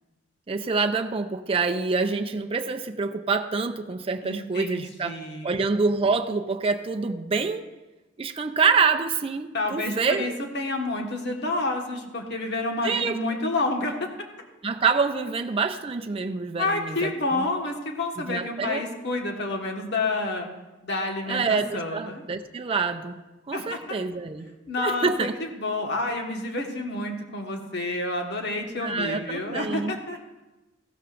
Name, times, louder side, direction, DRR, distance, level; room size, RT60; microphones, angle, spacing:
voice 1, 0.5-7.7 8.2-10.4 12.8-13.1 14.6-17.5 18.2-18.8 21.3-23.2 23.5-24.5 24.8-25.3 28.8-30.0, right 4 dB, 30° right, 5 dB, 0.5 m, -26 dB
voice 2, 4.2-5.5 9.5-14.1 16.6-20.5 20.8-22.2 23.5-23.8 24.7-30.2, left 2 dB, 60° left, 2 dB, 1.5 m, -29 dB
15.0 x 12.5 x 2.5 m, 1.1 s
head